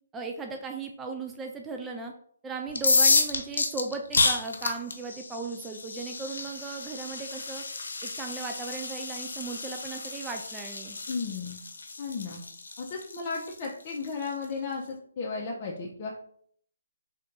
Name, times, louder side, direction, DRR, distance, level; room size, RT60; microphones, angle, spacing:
voice 1, 0.1-2.1 2.4-7.6 8.0-11.0, right 4 dB, 10° right, 3 dB, 0.3 m, -37 dB
sound 1, 2.7-14.4, left 3 dB, 70° left, 0.8 m, -30 dB
voice 2, 11.1-11.6 12.0-12.4 12.8-16.1, left 4 dB, 30° left, -3 dB, 0.6 m, -34 dB
3.4 x 2.7 x 3.8 m, 0.62 s
hypercardioid pair, 155°, 0 cm